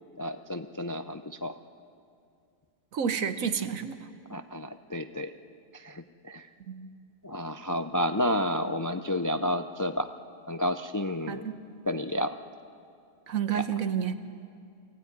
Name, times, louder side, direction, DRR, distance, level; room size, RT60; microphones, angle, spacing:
voice 1, 0.2-1.5 4.3-5.3 5.7-6.5 7.2-10.1 10.5-11.4 11.9-12.4 13.5-13.6, left 1 dB, 30° left, 8 dB, 0.3 m, -31 dB
voice 2, 2.9-4.0 6.7-6.9 11.3-11.6 13.3-14.1, right 8 dB, 85° right, 10 dB, 1.4 m, -30 dB
24.5 x 15.5 x 9.5 m, 2.4 s
omnidirectional pair, 1.4 m